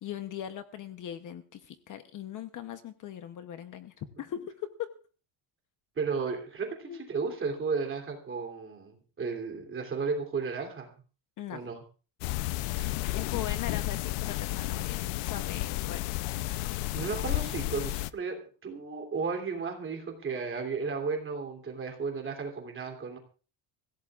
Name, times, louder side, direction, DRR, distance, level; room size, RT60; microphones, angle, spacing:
voice 1, 0.0-4.7 6.8-7.1 11.4-11.6 13.1-16.1, left 10 dB, 40° left, 9 dB, 0.9 m, -40 dB
voice 2, 6.0-10.9 11.5-11.8 12.7-12.9 16.5-16.6 16.9-18.4 18.6-23.2, right 5 dB, 25° right, 3 dB, 3.0 m, -34 dB
sound 1, 12.2-18.1, left 17 dB, 85° left, 0.7 m, -32 dB
25.0 x 16.0 x 2.4 m, 0.37 s
cardioid pair, 165°, 50 cm